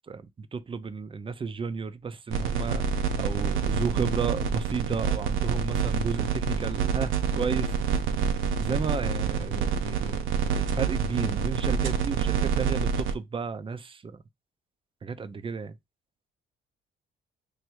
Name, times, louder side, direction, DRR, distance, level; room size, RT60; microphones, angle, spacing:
voice 1, 0.0-2.8 3.2-7.7 8.6-10.1 10.5-14.2 15.0-15.8, right 5 dB, 25° right, 0.5 m, -33 dB
sound 1, 2.3-13.1, right 6 dB, 85° right, 0.7 m, -27 dB
3.3 x 2.7 x 4.5 m
cardioid pair, 90°, 20 cm